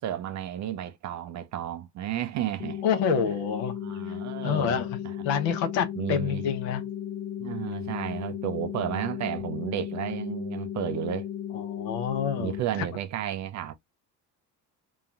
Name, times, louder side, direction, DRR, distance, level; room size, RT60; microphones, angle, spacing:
voice 1, 0.0-2.8 3.8-5.1 6.0-6.4 7.4-11.3 12.4-13.7, right 11 dB, 40° right, 0.4 m, -32 dB
sound 1, 2.6-12.6, left 10 dB, 40° left, 0.4 m, -35 dB
voice 2, 2.8-3.7 4.4-5.0 5.2-6.8 11.5-12.8, left 7 dB, 60° left, 0.8 m, -28 dB
2.9 x 2.3 x 2.3 m
hypercardioid pair, 55°, 49 cm